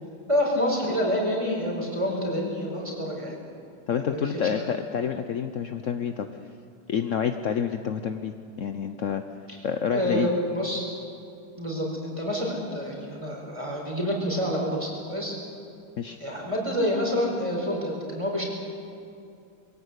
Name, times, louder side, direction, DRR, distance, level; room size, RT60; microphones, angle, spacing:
voice 1, 0.3-3.4 4.0-4.3 9.9-10.8 11.6-15.4 16.2-18.4, equal, 15° right, -2 dB, 4.7 m, -27 dB
voice 2, 3.9-6.3 6.9-9.2 9.6-10.3 16.0-16.2, left 7 dB, 70° left, 7 dB, 0.7 m, -28 dB
22.0 x 16.5 x 8.2 m, 2.5 s
omnidirectional pair, 2.3 m